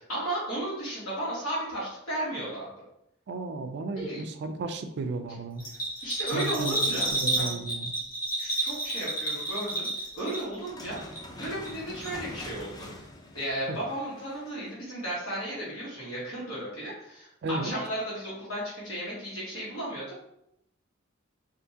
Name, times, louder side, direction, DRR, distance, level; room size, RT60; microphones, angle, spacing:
voice 1, 0.0-2.7 3.9-4.2 6.0-7.1 7.4-7.5 8.4-11.0 11.4-12.9 13.3-20.2, right 1 dB, 80° left, -7 dB, 1.4 m, -34 dB
voice 2, 3.3-5.7 6.3-7.9 13.7-13.8 17.4-17.7, right 3 dB, 55° right, 8 dB, 0.4 m, -34 dB
Bell, 5.6-10.7 11.0-11.8 12.0-12.1, right 1 dB, 45° left, 1.2 m, -30 dB
sound 1, 10.5-14.7, left 1 dB, 20° left, 0.4 m, -44 dB
3.5 x 2.5 x 2.7 m, 0.79 s
head